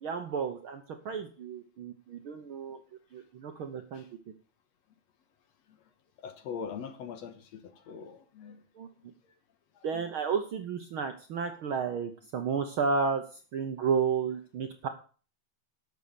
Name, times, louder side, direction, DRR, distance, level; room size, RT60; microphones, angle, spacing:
voice 1, 0.0-2.8 3.1-4.0 8.8-8.9 9.8-13.2 13.5-14.9, right 5 dB, 65° right, 6 dB, 1.4 m, -32 dB
voice 2, 6.2-8.6 9.0-9.1 9.7-10.0, left 6 dB, 65° left, 9 dB, 2.3 m, -42 dB
11.5 x 6.7 x 6.9 m, 0.40 s
omnidirectional pair, 3.4 m